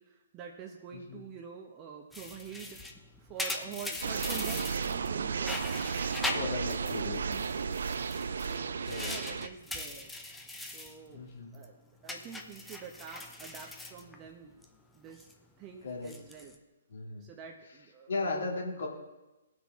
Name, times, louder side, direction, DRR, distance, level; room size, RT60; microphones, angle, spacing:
voice 1, 0.1-2.8 3.2-5.7 6.2-6.4 7.0-7.7 8.3-10.1 10.6-11.2 11.5-14.5 14.9-15.3 15.6-16.6 17.2-18.9, right 7 dB, 25° right, 0 dB, 1.0 m, -47 dB
sound 1, 2.1-5.1 5.4-7.0 7.3-11.0 11.3-11.6 12.1-14.6 15.0-15.3 15.9-16.5, left 2 dB, 5° left, 0.8 m, -40 dB
sound 2, 4.0-9.5, right 6 dB, 65° right, 0.4 m, -34 dB
voice 2, 6.3-7.2 8.9-9.5 11.1-11.6 15.8-16.1 16.9-17.3 18.1-18.9, left 3 dB, 70° left, -1 dB, 2.3 m, -36 dB
15.5 x 6.2 x 3.7 m, 1.0 s
figure-of-eight pair, 130°, 0 cm